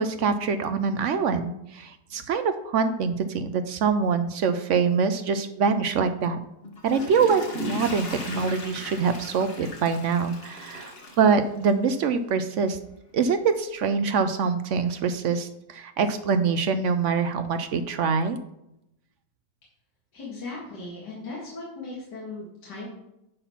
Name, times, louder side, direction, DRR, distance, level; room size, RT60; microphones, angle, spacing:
voice 1, 0.0-6.4 6.8-12.8 13.1-18.4, right 5 dB, 65° right, 10 dB, 0.7 m, -24 dB
Water / Toilet flush, 6.6-11.9 12.4-12.5, left 1 dB, 35° left, 1.6 m, -37 dB
voice 2, 20.1-22.9, left 3 dB, 75° left, -6 dB, 2.6 m, -38 dB
10.0 x 4.2 x 5.7 m, 0.84 s
omnidirectional pair, 1.8 m